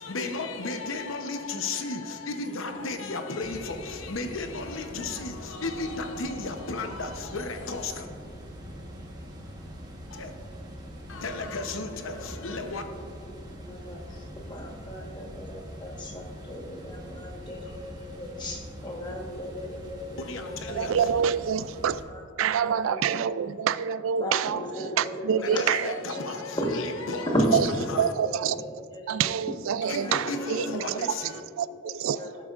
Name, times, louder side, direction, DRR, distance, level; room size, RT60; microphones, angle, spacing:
voice 1, 0.0-8.1 10.1-10.3 11.1-12.8 20.2-21.2 25.4-27.3 27.9-28.1 29.8-31.4, left 3 dB, 75° left, 0.9 m, -34 dB
sound 1, 3.4-22.0, equal, 20° right, 1.2 m, -43 dB
voice 2, 13.0-20.9 22.1-23.2 23.5-23.6 24.2-26.8 27.1-27.6 28.2-29.6 30.0-30.6 30.9-31.0 31.5-32.4, equal, 20° left, 1.3 m, -35 dB
voice 3, 20.7-22.0 22.4-24.6 25.0-26.0 27.5-27.6 28.0-28.6 29.1-31.0 31.6-32.4, right 8 dB, 75° right, 0.3 m, -26 dB
17.5 x 8.4 x 2.5 m
head